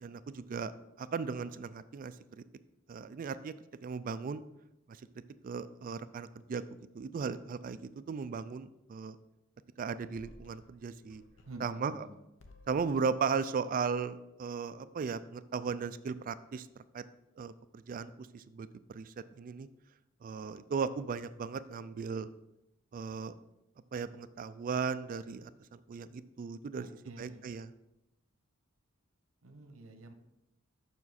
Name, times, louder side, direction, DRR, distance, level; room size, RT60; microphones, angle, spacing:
voice 1, 0.0-0.7 1.0-2.4 2.9-3.5 3.8-4.4 5.4-6.6 6.9-9.2 9.8-11.2 11.6-12.0 12.7-16.7 16.9-17.0 17.4-19.7 20.2-22.3 22.9-23.3 23.9-27.7, right 5 dB, 40° right, 14 dB, 0.3 m, -37 dB
sound 1, 10.0-12.1 12.4-13.1, left 1 dB, 65° left, 0.8 m, -58 dB
voice 2, 11.4-12.2 26.8-27.5 29.4-30.1, right 1 dB, 85° right, 7 dB, 0.9 m, -49 dB
7.1 x 6.1 x 4.1 m, 0.90 s
head